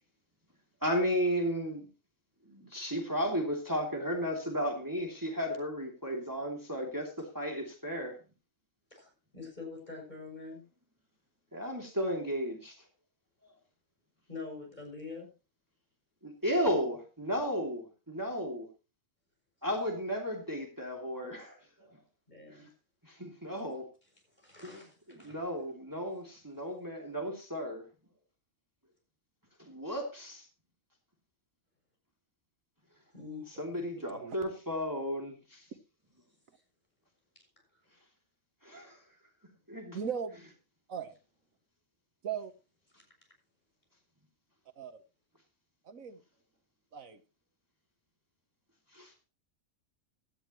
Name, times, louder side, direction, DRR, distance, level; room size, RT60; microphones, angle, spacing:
voice 1, 0.8-1.9 2.5-8.2 11.5-12.8 16.2-18.7 19.6-22.0 22.5-22.7 23.0-23.9 24.6-27.9 29.6-30.5 33.5-35.7 38.6-39.0 39.7-40.0 48.9-49.1, equal, 15° right, 1 dB, 2.8 m, -34 dB
voice 2, 8.9-10.6 14.3-15.3 22.3-22.7 24.4-25.4 33.1-33.5, left 4 dB, 30° left, 1 dB, 7.1 m, -45 dB
voice 3, 33.7-34.4 39.9-40.3 40.9-41.2 42.2-42.5 44.8-45.0 45.8-46.2 46.9-47.2, right 7 dB, 80° right, 10 dB, 1.6 m, -38 dB
17.0 x 12.5 x 3.1 m, 0.30 s
omnidirectional pair, 1.4 m